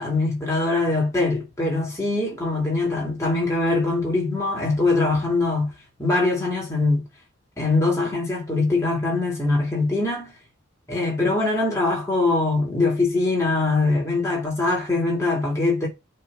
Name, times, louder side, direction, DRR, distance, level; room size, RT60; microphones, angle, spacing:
voice 1, 0.0-5.7 6.0-7.0 7.6-10.3 10.9-15.9, left 3 dB, 15° left, 2.5 m, -22 dB
7.5 x 3.5 x 4.8 m
head